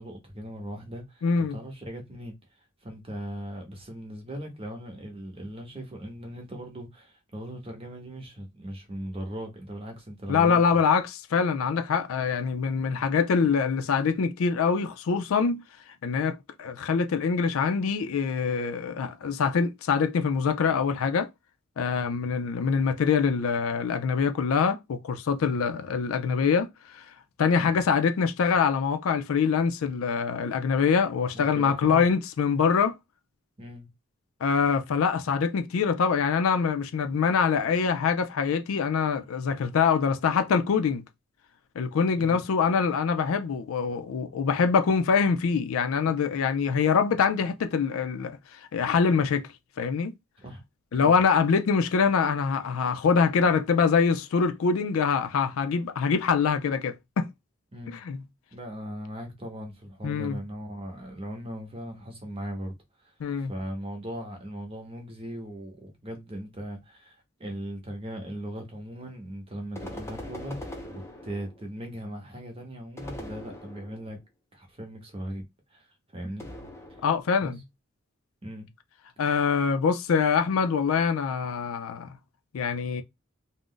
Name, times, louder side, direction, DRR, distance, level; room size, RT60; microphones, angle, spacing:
voice 1, 0.0-10.8 22.0-22.2 25.4-25.6 27.6-27.8 31.3-32.0 33.6-33.9 42.2-42.4 50.4-50.6 51.0-51.2 57.7-58.0 58.5-74.2 74.5-75.4 75.7-76.5 77.0-77.1 77.4-77.5 78.4-78.7, equal, 25° right, 0.8 m, -39 dB
voice 2, 1.2-1.6 10.3-15.6 16.0-21.3 21.8-26.7 27.0-27.1 27.4-32.9 34.4-41.0 41.8-48.4 48.7-49.5 49.8-50.1 50.9-57.3 58.0-58.2 60.0-60.4 63.2-63.5 77.0-77.6 79.2-82.2 82.5-83.0, left 6 dB, 80° left, 0.4 m, -24 dB
sound 1, 69.8-71.7 73.0-74.2 76.4-77.4, left 1 dB, 15° left, 0.5 m, -41 dB
2.4 x 2.1 x 3.7 m
head